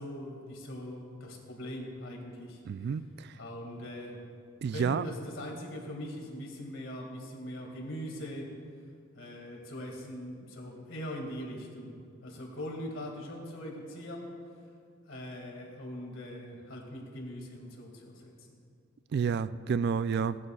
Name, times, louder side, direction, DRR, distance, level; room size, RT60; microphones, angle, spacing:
voice 1, 0.0-2.6 3.4-4.2 4.7-8.5 9.2-12.0 12.2-14.3 15.1-18.5, equal, 75° left, 0 dB, 2.1 m, -41 dB
voice 2, 2.7-3.3 4.6-5.1 19.1-20.4, right 6 dB, 55° right, 15 dB, 0.3 m, -30 dB
17.5 x 11.0 x 2.3 m, 2.2 s
head